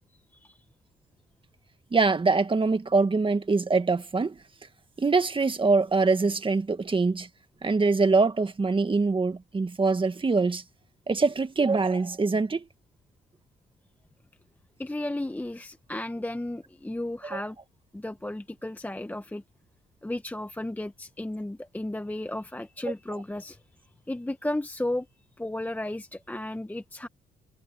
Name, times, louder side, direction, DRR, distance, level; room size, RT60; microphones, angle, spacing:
voice 1, 1.9-4.4 5.0-7.3 7.6-10.6 11.1-12.6 17.3-17.4, right 4 dB, 25° right, 1.9 m, -24 dB
voice 2, 14.8-17.6 17.9-19.4 20.0-23.6 24.1-25.1 25.4-27.1, left 1 dB, 10° left, 1.0 m, -34 dB
cardioid pair, 90°, 20 cm